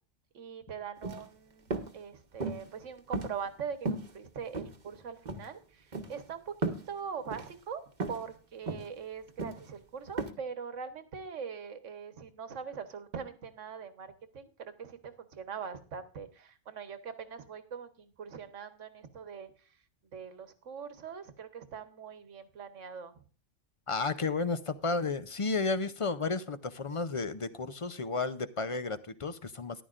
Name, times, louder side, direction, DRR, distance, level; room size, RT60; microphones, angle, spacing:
voice 1, 0.3-6.5 6.9-7.8 8.1-19.5 20.1-23.2, right 6 dB, 85° right, 10 dB, 1.5 m, -42 dB
sound 1, 1.0-1.3 1.7-1.9 2.4-2.7 3.1-3.6 3.9-4.1 4.5-5.0 5.3-5.5 5.9-6.2 6.6-6.9 7.3-7.5 8.0-8.2 8.7-8.9 9.4-9.7 10.2-10.3, right 3 dB, 40° right, 1.1 m, -35 dB
voice 2, 23.9-29.8, left 4 dB, 40° left, 13 dB, 0.5 m, -32 dB
14.0 x 11.0 x 2.5 m, 0.36 s
omnidirectional pair, 1.2 m